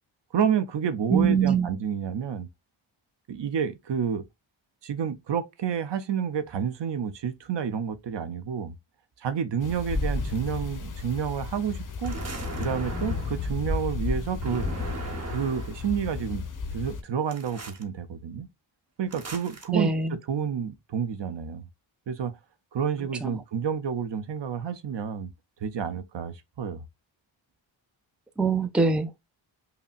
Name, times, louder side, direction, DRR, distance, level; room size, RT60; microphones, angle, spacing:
voice 1, 0.3-2.5 3.3-4.2 4.8-8.8 9.2-12.2 12.6-14.7 15.3-16.4 16.7-18.5 19.0-19.9 20.3-21.7 22.1-22.3 22.7-25.3 25.6-26.8, right 7 dB, 60° right, 0.7 m, -29 dB
voice 2, 1.1-1.7 19.7-20.2 23.2-23.4 28.4-29.2, right 5 dB, ahead, 0.4 m, -23 dB
sound 1, 9.6-17.0, left 4 dB, 40° left, 0.8 m, -33 dB
sound 2, 12.0-13.5 14.4-15.9 17.3-17.8 19.1-19.7, right 2 dB, 30° right, 0.9 m, -37 dB
5.5 x 2.1 x 2.4 m
cardioid pair, 70°, 48 cm